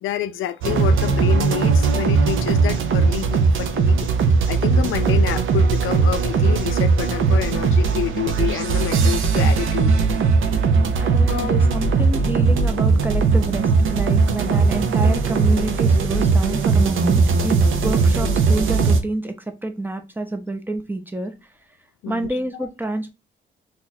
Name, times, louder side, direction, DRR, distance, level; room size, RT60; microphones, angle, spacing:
voice 1, 0.0-4.1 4.5-9.9 11.3-11.6 14.5-14.6 22.0-22.3, left 12 dB, 90° left, 0.4 m, -28 dB
sound 1, 0.6-19.0, right 4 dB, 80° right, 0.6 m, -18 dB
voice 2, 10.9-17.6 17.8-21.3 22.1-23.1, right 2 dB, 10° right, 0.6 m, -28 dB
2.9 x 2.3 x 4.0 m
cardioid pair, 110°, 20 cm